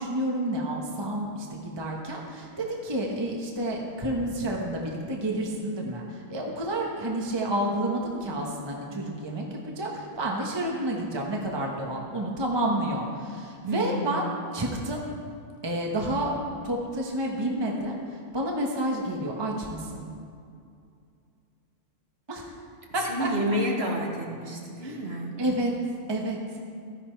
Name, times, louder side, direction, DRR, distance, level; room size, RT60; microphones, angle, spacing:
voice 1, 0.0-14.2 14.5-15.0 15.6-16.3 16.6-17.9 18.3-20.1 22.3-22.4 22.9-23.6 24.8-24.9 25.4-25.7 26.1-26.4, right 1 dB, 20° right, -1 dB, 1.1 m, -30 dB
voice 2, 13.7-14.1 23.0-25.4, equal, 50° right, -1 dB, 1.8 m, -29 dB
14.0 x 10.0 x 4.5 m, 2.4 s
omnidirectional pair, 1.4 m